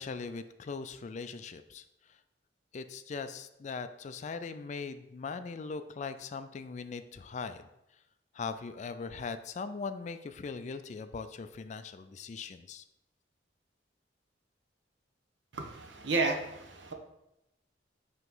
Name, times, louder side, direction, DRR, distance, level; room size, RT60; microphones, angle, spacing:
voice 1, 0.0-1.8 2.7-7.7 8.3-12.8, left 4 dB, 40° left, 10 dB, 0.3 m, -40 dB
voice 2, 15.5-16.9, right 3 dB, 80° right, 4 dB, 0.8 m, -32 dB
5.7 x 3.0 x 5.4 m, 0.86 s
head